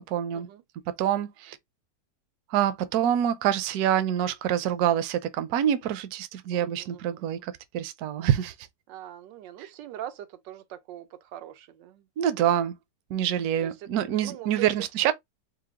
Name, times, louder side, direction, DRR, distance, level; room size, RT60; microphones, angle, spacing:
voice 1, 0.1-0.5 1.0-1.6 2.5-8.5 12.2-12.7 13.1-15.1, right 10 dB, 65° right, 1.0 m, -26 dB
voice 2, 6.5-7.5 8.9-12.1 13.6-14.7 15.0-15.1, right 12 dB, 85° right, 1.3 m, -42 dB
4.7 x 2.0 x 3.5 m
omnidirectional pair, 1.9 m